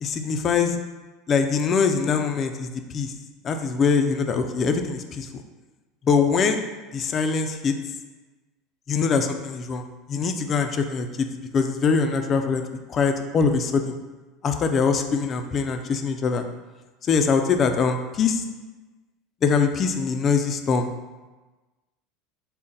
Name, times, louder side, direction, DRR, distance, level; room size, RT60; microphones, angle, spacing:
voice 1, 0.0-0.8 1.3-3.1 3.4-5.3 6.0-6.6 6.9-7.7 8.9-11.3 11.5-12.6 12.9-14.0 14.4-16.4 17.1-18.4 19.4-20.9, left 5 dB, 35° left, 6 dB, 0.3 m, -23 dB
3.9 x 2.1 x 3.8 m, 1.2 s
supercardioid pair, 105°, 0 cm